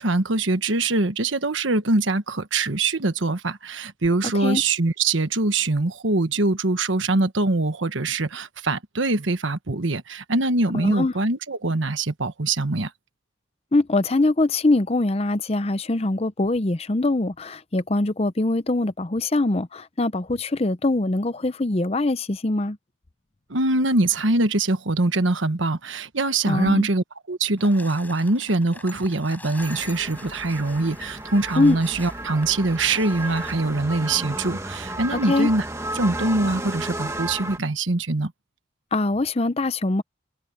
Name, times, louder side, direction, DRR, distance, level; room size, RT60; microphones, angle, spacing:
voice 1, 0.0-12.9 23.5-35.7 35.9-38.3, right 2 dB, 75° right, 1.3 m, -23 dB
voice 2, 10.8-11.1 13.7-22.8 26.5-26.9 31.6-31.8 35.1-35.5 38.9-40.0, left 2 dB, 30° left, 0.6 m, -23 dB
sound 1, 27.6-33.6, left 2 dB, 10° left, 7.3 m, -44 dB
sound 2, 29.6-37.6, right 1 dB, 15° right, 1.3 m, -33 dB
head